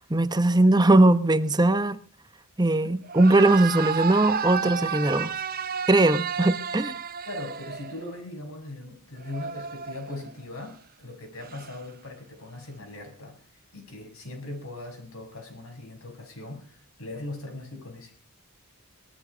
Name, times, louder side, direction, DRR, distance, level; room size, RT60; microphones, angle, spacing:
voice 1, 0.0-2.0 2.6-5.3 5.9-6.9, right 2 dB, 20° right, 1.0 m, -20 dB
sound 1, 3.0-8.2 9.2-10.4 11.4-11.8, right 7 dB, 45° right, 0.7 m, -32 dB
voice 2, 7.3-13.4 13.7-18.1, left 2 dB, 70° left, 7.1 m, -40 dB
20.0 x 13.5 x 5.1 m
head